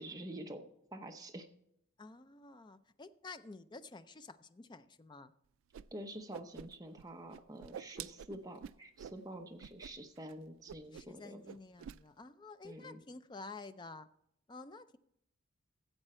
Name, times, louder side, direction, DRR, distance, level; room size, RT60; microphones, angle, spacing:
voice 1, 0.0-1.5 5.9-11.4 12.6-13.0, right 1 dB, 15° right, 4 dB, 0.8 m, -47 dB
voice 2, 2.0-5.3 10.9-14.1 14.5-15.0, left 3 dB, 20° left, 12 dB, 0.4 m, -51 dB
Whoosh swoosh swish, 5.7-5.8 6.1-7.0 7.3-9.2 9.6-9.9 10.2-10.3 10.7-11.2 11.4-12.0, right 8 dB, 70° right, 0.3 m, -48 dB
13.5 x 7.8 x 4.3 m, 0.76 s
head